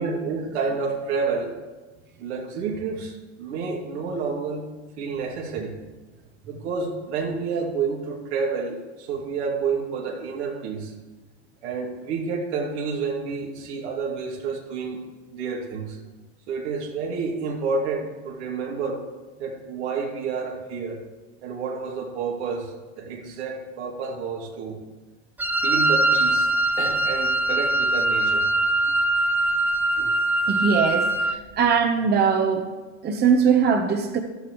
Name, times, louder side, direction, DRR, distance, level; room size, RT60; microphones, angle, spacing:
voice 1, 0.0-1.5 2.2-4.7 5.0-5.8 6.5-10.9 11.6-15.0 15.3-16.0 16.5-19.0 19.4-21.0 21.4-24.8 25.6-26.5 26.8-28.5, right 5 dB, 80° right, 0 dB, 2.7 m, -29 dB
Wind instrument woodwind instrument, 25.4-31.4, right 2 dB, 5° right, 0.4 m, -22 dB
voice 2, 30.5-32.7 33.0-34.2, right 6 dB, 30° right, 5 dB, 1.1 m, -21 dB
15.0 x 12.0 x 3.2 m, 1.3 s
supercardioid pair, 115°, 33 cm